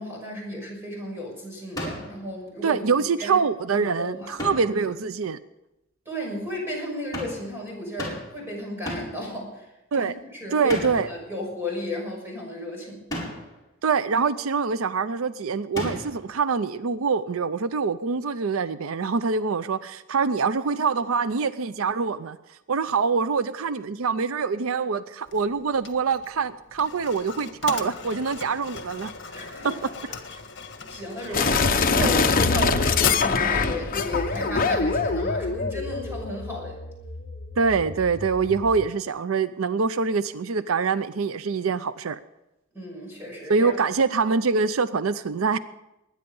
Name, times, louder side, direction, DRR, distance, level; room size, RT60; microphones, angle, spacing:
voice 1, 0.0-2.8 3.2-3.3 3.7-4.5 6.1-9.7 9.9-10.8 11.1-13.0 29.3-29.8 30.9-36.7 42.7-43.7, left 1 dB, 10° right, -2 dB, 6.2 m, -34 dB
sound 1, 1.8-2.2 4.4-4.8 7.1-7.5 8.0-8.4 8.9-9.2 10.7-11.2 13.1-13.5 15.7-16.3, equal, 20° left, 4.7 m, -33 dB
voice 2, 2.6-5.4 9.9-10.1 10.5-11.1 13.8-22.4 22.7-29.4 30.3-30.4 31.3-31.5 32.0-32.1 37.6-42.2 43.5-45.6, right 5 dB, 90° right, 14 dB, 0.5 m, -25 dB
Mechanisms, 25.3-34.9, left 5 dB, 60° left, 1.6 m, -39 dB
sound 2, 31.3-38.8, left 4 dB, 45° left, 1.0 m, -24 dB
21.0 x 9.9 x 5.4 m, 0.93 s
head